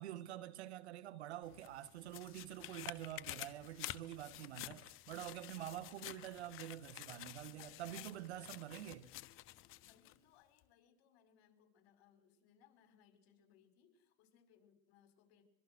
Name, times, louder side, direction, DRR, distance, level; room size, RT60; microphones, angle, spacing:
voice 1, 0.0-9.1, right 12 dB, 85° right, 1.9 m, -47 dB
sound 1, 1.4-10.2 10.6-10.7, left 16 dB, 40° left, 1.2 m, -51 dB
voice 2, 4.3-4.8 5.4-6.1 7.4-8.9 9.8-15.4, left 9 dB, 70° left, 5.9 m, -68 dB
24.5 x 23.5 x 6.4 m
supercardioid pair, 130°, 32 cm